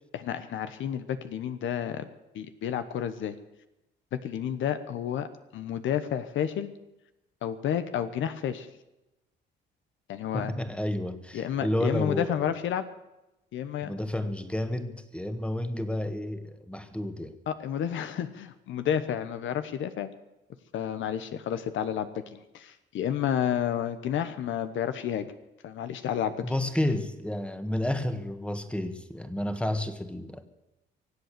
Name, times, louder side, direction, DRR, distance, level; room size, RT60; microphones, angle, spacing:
voice 1, 0.1-2.0 2.3-3.3 4.1-5.3 5.5-6.7 7.4-8.7 10.1-10.5 11.3-12.9 13.5-13.9 17.5-20.1 20.7-25.3 25.6-26.3, left 9 dB, 75° left, 11 dB, 1.1 m, -30 dB
voice 2, 10.3-12.5 13.8-17.4 26.4-30.4, left 1 dB, 5° left, 9 dB, 1.6 m, -31 dB
24.0 x 8.1 x 6.8 m, 0.95 s
cardioid pair, 90°, 20 cm